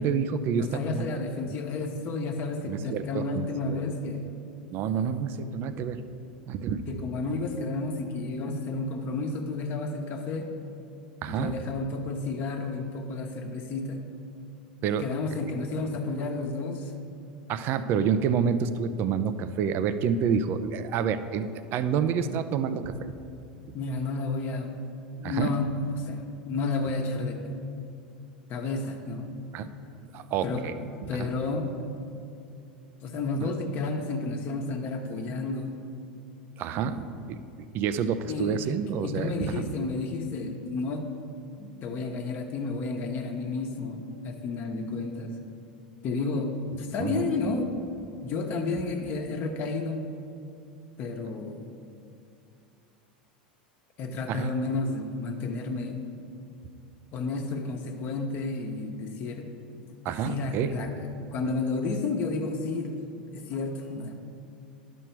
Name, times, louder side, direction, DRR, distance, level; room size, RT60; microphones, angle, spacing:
voice 1, 0.0-1.1 2.7-3.8 4.7-6.0 6.5-6.8 11.2-11.6 14.8-15.0 17.5-23.1 25.2-25.6 29.5-29.7 30.1-30.7 31.2-31.3 33.4-33.5 36.6-37.4 37.7-39.7 47.0-47.2 54.3-54.5 60.0-60.7, right 7 dB, 50° right, 11 dB, 0.5 m, -28 dB
voice 2, 0.5-4.3 6.9-10.5 11.3-14.0 15.0-16.9 23.7-24.9 25.1-27.5 28.5-29.4 30.4-31.7 33.0-35.8 38.3-41.1 41.6-45.3 46.0-47.8 48.2-50.0 51.0-51.6 54.0-56.1 57.1-59.5 60.0-63.0 63.3-64.2, left 3 dB, 45° left, 3 dB, 1.1 m, -31 dB
11.0 x 6.3 x 4.5 m, 2.5 s
hypercardioid pair, 90°, 5 cm